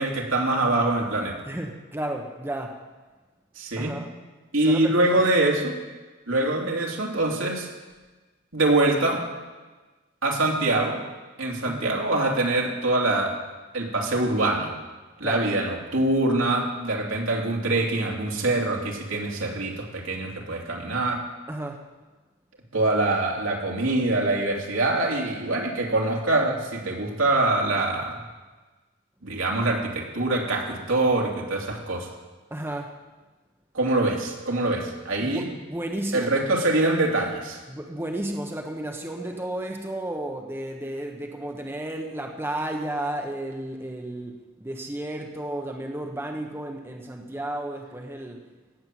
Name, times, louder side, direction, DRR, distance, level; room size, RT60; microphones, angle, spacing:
voice 1, 0.0-1.4 3.6-4.0 4.5-5.7 6.3-7.7 8.5-9.2 10.2-11.0 11.4-13.3 13.7-14.7 15.2-21.2 22.7-28.2 29.2-32.1 33.7-35.4 36.1-37.6, right 2 dB, 75° right, -1 dB, 2.9 m, -24 dB
voice 2, 1.5-2.8 3.8-4.1 4.6-5.1 11.6-11.9 15.2-15.5 21.5-21.8 32.5-32.9 35.2-36.3 37.7-48.4, right 1 dB, 10° right, 2 dB, 1.0 m, -33 dB
17.0 x 7.9 x 7.6 m, 1.3 s
head